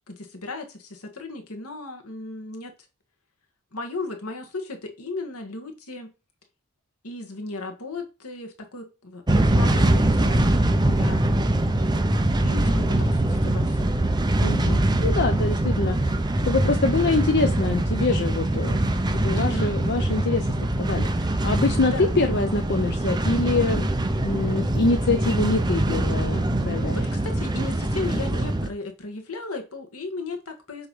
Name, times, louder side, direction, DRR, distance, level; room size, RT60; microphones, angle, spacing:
voice 1, 0.1-2.7 3.7-6.1 7.0-10.5 11.0-11.3 12.4-14.0 19.3-19.7 21.7-22.2 26.9-30.9, left 2 dB, 75° left, 1.7 m, -35 dB
sound 1, 9.3-28.7, right 1 dB, 20° right, 0.7 m, -23 dB
voice 2, 14.4-16.1 16.4-20.5 20.8-23.9 24.2-27.0, left 3 dB, 50° left, 0.7 m, -25 dB
7.9 x 3.2 x 5.5 m
head